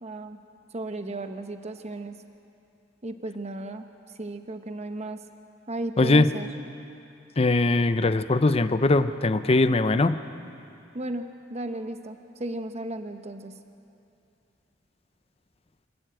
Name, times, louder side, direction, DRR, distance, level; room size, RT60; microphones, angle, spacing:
voice 1, 0.0-0.4 0.7-2.2 3.0-3.9 4.1-5.2 5.7-6.5 10.9-13.5, right 1 dB, 35° right, 7 dB, 0.9 m, -35 dB
voice 2, 6.0-6.3 7.4-10.2, left 2 dB, 35° left, 12 dB, 0.6 m, -21 dB
28.0 x 12.5 x 9.0 m, 2.6 s
head